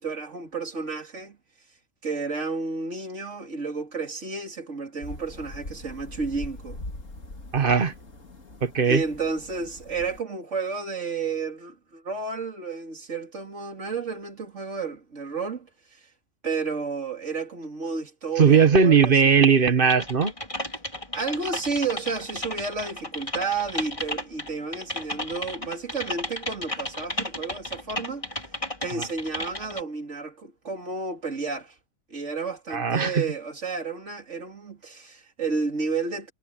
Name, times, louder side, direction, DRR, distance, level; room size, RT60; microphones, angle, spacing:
voice 1, 0.0-1.4 2.0-6.8 8.9-16.1 16.4-19.3 21.1-28.3 28.8-31.7 32.1-36.3, right 4 dB, 70° right, 3.3 m, -31 dB
sound 1, 5.0-10.2, left 2 dB, 85° left, 3.8 m, -41 dB
voice 2, 7.5-7.9 8.6-9.0 18.4-20.3 28.9-29.1 32.7-33.2, right 6 dB, 45° right, 1.3 m, -19 dB
Typing, 19.9-29.8, left 1 dB, 25° left, 3.8 m, -33 dB
omnidirectional pair, 1.3 m